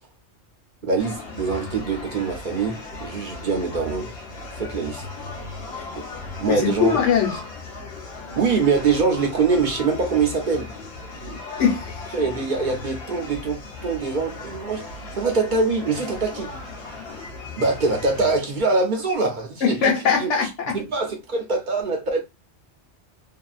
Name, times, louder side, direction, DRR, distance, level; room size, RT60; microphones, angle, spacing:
voice 1, 0.8-4.1 4.6-5.0 5.9-6.0 6.4-7.0 8.4-10.7 12.1-14.8 15.1-16.5 17.6-20.3 20.7-22.2, right 4 dB, 50° right, 0.7 m, -23 dB
sound 1, 1.0-18.4, left 3 dB, 65° left, 0.9 m, -37 dB
voice 2, 6.5-7.4 11.2-11.8 19.6-20.8, left 7 dB, 90° left, 1.1 m, -21 dB
2.7 x 2.3 x 2.3 m
omnidirectional pair, 1.2 m